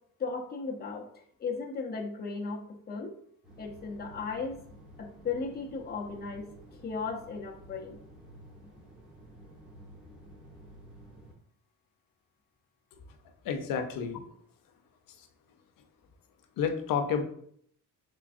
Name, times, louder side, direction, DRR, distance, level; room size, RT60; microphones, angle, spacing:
voice 1, 0.2-3.1 3.6-4.6 5.0-6.5 6.8-8.0, left 4 dB, 30° left, 0 dB, 0.6 m, -36 dB
sound 1, 3.4-11.3, equal, 5° right, 1.1 m, -52 dB
voice 2, 13.4-14.2 16.6-17.2, left 6 dB, 85° left, 6 dB, 0.6 m, -30 dB
3.8 x 3.2 x 2.5 m, 0.65 s
cardioid pair, 140°, 33 cm